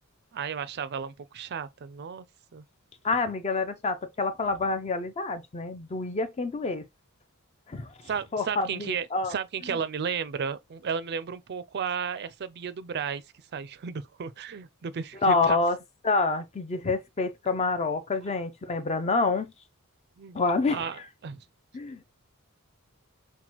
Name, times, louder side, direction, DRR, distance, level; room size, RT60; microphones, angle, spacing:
voice 1, 0.3-2.2 2.5-2.6 8.1-13.2 13.5-15.6 20.2-20.4 20.7-21.4, right 6 dB, 45° right, 0.4 m, -33 dB
voice 2, 3.0-6.9 7.7-7.9 8.3-9.3 15.2-15.8 16.0-19.5 20.3-20.9 21.7-22.2, left 3 dB, 30° left, 0.4 m, -27 dB
5.8 x 2.2 x 2.9 m
head